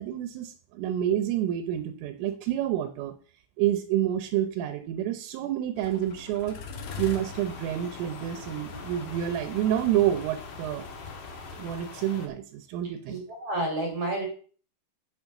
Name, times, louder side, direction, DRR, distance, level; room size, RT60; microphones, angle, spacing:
voice 1, 0.0-3.1 3.6-6.6 7.0-10.8 11.5-13.2, right 11 dB, 80° right, 10 dB, 3.4 m, -28 dB
sound 1, 5.8-11.9, left 3 dB, 75° left, 1.9 m, -43 dB
sound 2, 6.8-12.3, left 5 dB, 55° left, 2.8 m, -44 dB
voice 2, 13.1-14.2, right 1 dB, 35° right, 1 dB, 2.7 m, -30 dB
8.8 x 7.3 x 6.6 m, 0.42 s
omnidirectional pair, 5.9 m